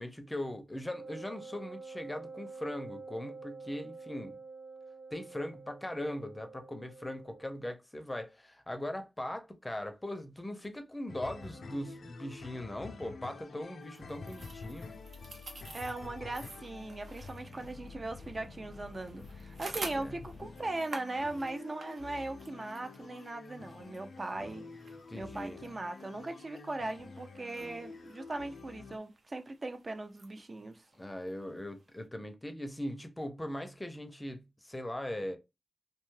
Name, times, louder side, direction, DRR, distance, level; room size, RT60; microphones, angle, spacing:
voice 1, 0.0-4.4 5.1-14.9 19.9-20.2 25.1-25.6 31.0-35.4, left 1 dB, 15° left, 0.5 m, -40 dB
Wind instrument woodwind instrument, 0.9-7.5, right 4 dB, 55° right, 1.1 m, -48 dB
sound 1, 11.1-29.0, left 4 dB, 90° left, 0.4 m, -48 dB
sound 2, 13.8-32.0, right 3 dB, 80° right, 0.7 m, -51 dB
voice 2, 15.7-24.6 25.1-30.8, right 2 dB, 40° right, 0.3 m, -39 dB
2.7 x 2.2 x 3.1 m
wide cardioid pair, 80°, 0 cm